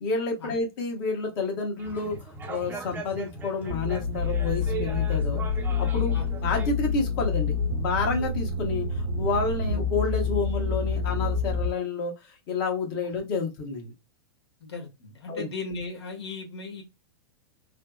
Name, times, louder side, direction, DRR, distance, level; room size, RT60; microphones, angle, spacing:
voice 1, 0.0-2.2 2.5-5.4 5.8-13.9 15.3-15.5, left 4 dB, 50° left, 2 dB, 1.1 m, -29 dB
sound 1, 1.8-6.7, right 4 dB, 15° right, 0.6 m, -39 dB
sound 2, 3.7-11.7, left 4 dB, 85° right, 0.8 m, -27 dB
voice 2, 14.6-16.8, left 3 dB, 75° left, 2 dB, 1.4 m, -37 dB
3.2 x 2.0 x 2.2 m, 0.25 s
hypercardioid pair, 125°, 14 cm